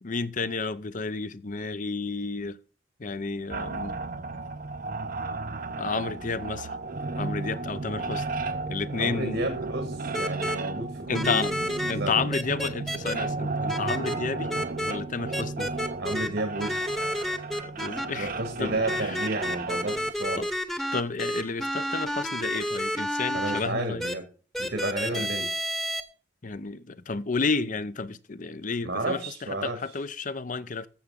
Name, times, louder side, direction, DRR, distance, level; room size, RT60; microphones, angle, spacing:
voice 1, 0.0-2.6 3.0-4.0 5.8-6.7 7.2-8.2 8.7-9.5 11.1-11.5 11.9-14.5 14.9-15.7 17.7-18.3 18.6-19.2 20.4-20.5 20.9-24.0 25.1-25.3 26.4-30.9, left 4 dB, 45° left, 0.6 m, -31 dB
sound 1, 3.5-20.1, right 3 dB, 50° right, 0.7 m, -34 dB
voice 2, 9.0-12.3 16.0-17.1 18.2-20.5 23.3-24.3 24.6-25.5 28.8-29.8, right 2 dB, 75° right, 2.1 m, -32 dB
sound 2, 10.1-10.6 11.1-11.9 12.3-13.1 13.7-14.2 14.5-14.9 15.3-16.3 16.6-18.1 18.9-23.6 24.0-24.1 24.5-26.0, equal, ahead, 1.0 m, -30 dB
14.5 x 7.1 x 3.7 m
head